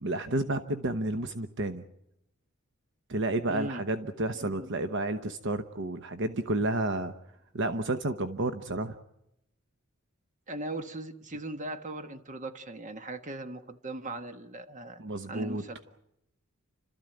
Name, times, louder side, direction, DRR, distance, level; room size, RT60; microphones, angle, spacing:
voice 1, 0.0-1.8 3.1-7.1 7.5-9.0 15.0-15.6, right 2 dB, 60° right, 9 dB, 1.0 m, -31 dB
voice 2, 3.5-3.8 4.4-4.8 10.5-15.8, right 2 dB, 35° right, 8 dB, 1.4 m, -39 dB
30.0 x 13.5 x 9.1 m, 0.83 s
head